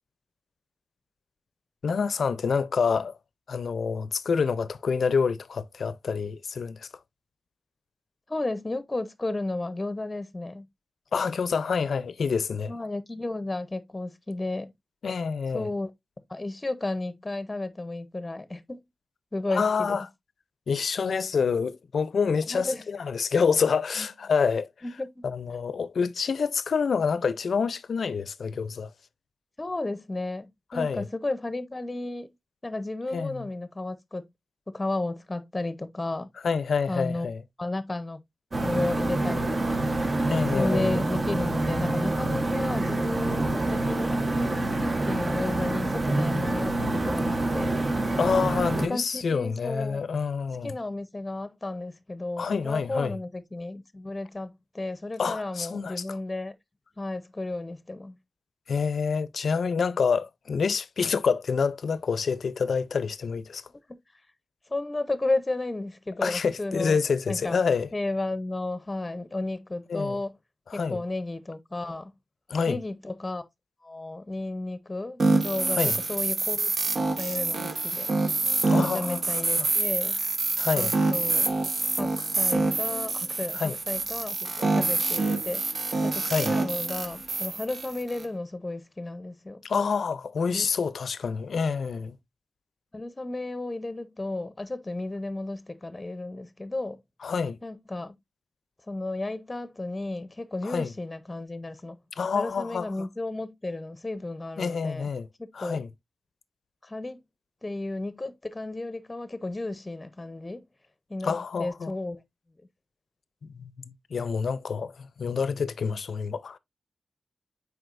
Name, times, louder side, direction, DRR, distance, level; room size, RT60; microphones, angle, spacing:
voice 1, 1.8-3.1 3.5-6.9 11.1-12.7 15.0-15.7 19.5-20.1 20.7-24.7 25.2-28.9 30.7-31.1 33.1-33.4 36.4-37.4 40.3-40.9 48.2-50.7 52.4-53.2 55.2-56.0 58.7-63.6 66.2-67.9 69.9-70.2 70.7-71.0 72.5-72.8 75.7-76.0 78.7-79.2 79.6-79.7 80.6-80.9 83.5-83.8 86.3-86.5 89.6-92.1 97.2-97.6 100.6-100.9 102.2-103.1 104.6-105.3 105.5-105.9 111.2-111.9 113.4-116.6, left 5 dB, 80° left, 0.5 m, -27 dB
voice 2, 8.3-10.7 12.7-14.7 15.5-15.9 16.3-18.8 19.3-20.1 22.5-22.9 24.0-24.1 24.8-25.2 29.6-32.3 32.6-34.3 34.7-36.3 36.9-37.3 37.6-38.2 38.6-39.8 40.5-47.8 48.9-50.0 50.6-56.5 57.0-58.2 63.7-64.0 64.7-67.0 67.3-67.6 67.9-70.4 70.7-72.1 72.7-73.4 73.8-76.7 77.0-78.1 78.8-80.2 80.7-81.5 81.9-85.6 86.0-89.6 90.5-90.7 92.9-97.0 97.6-98.1 98.9-102.0 102.3-105.1 105.4-105.8 106.8-107.2 107.6-110.7 111.1-112.2, left 2 dB, 20° left, 0.7 m, -33 dB
sound 1, 38.5-48.9, right 2 dB, 40° right, 1.1 m, -27 dB
sound 2, 75.2-88.2, right 3 dB, 60° right, 1.1 m, -26 dB
7.8 x 4.9 x 2.5 m
wide cardioid pair, 100°, 0 cm